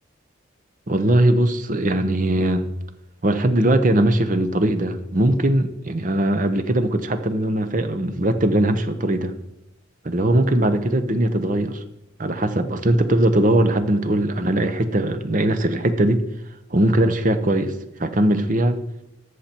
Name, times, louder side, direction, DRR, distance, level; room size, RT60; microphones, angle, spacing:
voice 1, 0.9-2.7 3.2-9.4 10.0-11.8 12.2-16.2 16.7-17.7 18.0-18.8, right 1 dB, 40° right, 9 dB, 0.8 m, -20 dB
13.5 x 6.6 x 4.4 m, 0.90 s
head